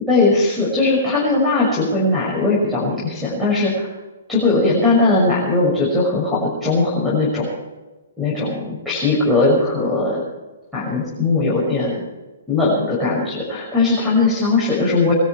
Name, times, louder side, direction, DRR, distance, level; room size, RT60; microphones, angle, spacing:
voice 1, 0.0-3.9 4.3-7.5 8.2-10.2 10.7-12.0 12.5-15.1, left 3 dB, ahead, -10 dB, 6.1 m, -19 dB
22.0 x 13.5 x 4.6 m, 1.2 s
hypercardioid pair, 125°, 0 cm